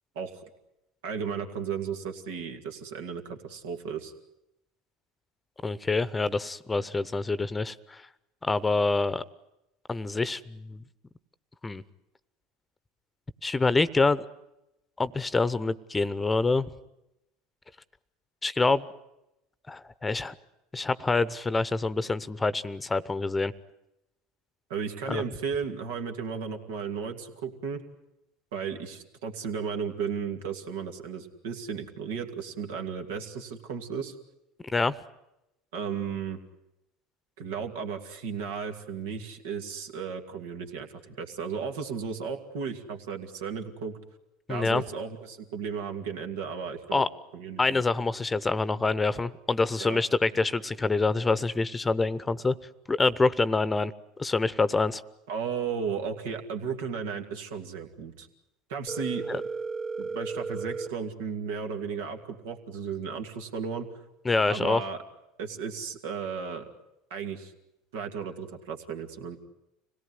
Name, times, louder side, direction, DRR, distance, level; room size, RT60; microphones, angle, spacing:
voice 1, 1.0-4.1 24.7-27.8 28.5-34.1 35.7-36.4 37.4-44.0 44.5-47.0 47.3-47.8 49.8-50.0 55.3-58.3 58.7-59.4 60.0-63.9 64.5-65.0 65.4-66.6 67.1-67.5 67.9-69.4, right 6 dB, 80° right, 5 dB, 2.3 m, -34 dB
voice 2, 5.6-8.0 8.4-9.2 9.9-10.8 11.6-11.8 13.4-14.3 15.0-16.7 18.4-18.8 19.7-20.3 20.7-23.5 25.1-25.2 34.6-35.0 44.5-44.8 46.9-47.1 47.6-52.6 52.9-53.9 54.2-55.0 59.3-59.4 64.2-64.8, left 3 dB, 15° left, 16 dB, 0.9 m, -26 dB
Telephone, 58.9-60.9, right 4 dB, 30° right, 1.9 m, -34 dB
26.0 x 18.0 x 9.6 m, 0.88 s
hypercardioid pair, 90°, 0 cm